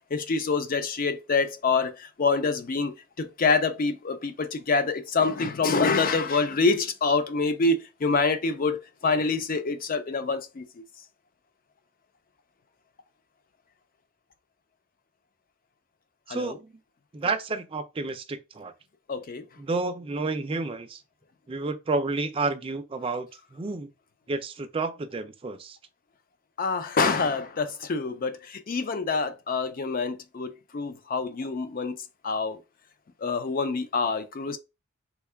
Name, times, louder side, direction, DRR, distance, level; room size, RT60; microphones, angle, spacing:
voice 1, 0.1-2.9 3.2-10.6 16.3-16.5 19.1-19.4 26.6-32.0 32.2-32.6 33.2-34.6, left 4 dB, 45° left, 0.4 m, -26 dB
voice 2, 16.3-16.7 17.1-18.7 19.6-21.0 21.5-23.9 24.3-25.8, right 3 dB, 30° right, 0.4 m, -30 dB
3.6 x 2.3 x 3.4 m
head